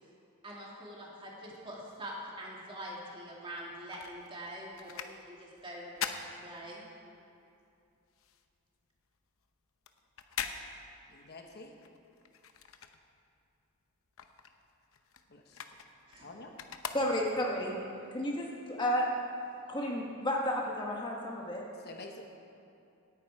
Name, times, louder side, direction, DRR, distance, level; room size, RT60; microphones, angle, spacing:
voice 1, 0.4-6.1 6.4-6.8 16.1-16.3, right 1 dB, 25° right, -3 dB, 2.3 m, -44 dB
sound 1, 3.5-7.2 7.5-13.5 13.8-17.6 18.1-18.2, left 7 dB, 70° left, 0.8 m, -43 dB
voice 2, 11.1-11.7 15.3-15.8 16.2-16.5 21.8-22.2, left 2 dB, 50° left, 3 dB, 1.1 m, -48 dB
voice 3, 16.9-19.1 19.7-21.7, equal, 20° left, -2 dB, 1.3 m, -32 dB
17.5 x 9.5 x 4.8 m, 2.6 s
head